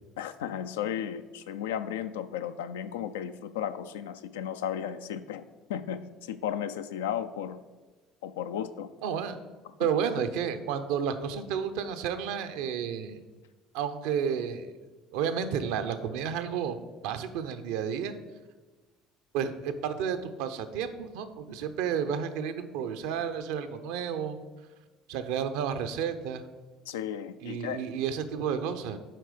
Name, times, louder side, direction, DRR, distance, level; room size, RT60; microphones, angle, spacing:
voice 1, 0.2-5.4 5.7-7.6 8.2-8.9 26.9-27.8, left 9 dB, 85° left, 11 dB, 0.4 m, -34 dB
voice 2, 9.0-9.4 9.8-13.2 13.7-14.7 15.1-16.8 17.0-18.1 19.3-24.4 25.1-26.5 27.4-29.0, right 7 dB, 75° right, 9 dB, 0.6 m, -31 dB
7.6 x 4.7 x 5.0 m, 1.3 s
hypercardioid pair, 65°, 0 cm